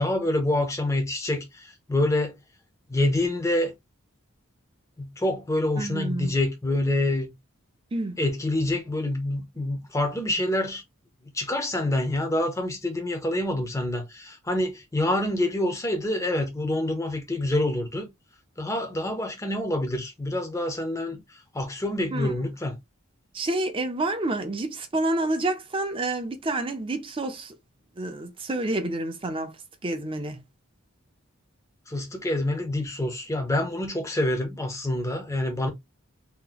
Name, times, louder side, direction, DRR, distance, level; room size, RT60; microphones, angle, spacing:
voice 1, 0.0-2.3 2.9-3.7 5.0-7.3 8.2-10.8 11.3-18.1 18.6-21.2 21.5-22.8 31.9-35.7, left 1 dB, 15° left, 0.6 m, -26 dB
voice 2, 5.8-6.3 7.9-8.2 22.1-22.3 23.3-27.5 28.0-29.5 29.8-30.4, right 2 dB, 25° right, 0.6 m, -28 dB
2.8 x 2.2 x 3.9 m
head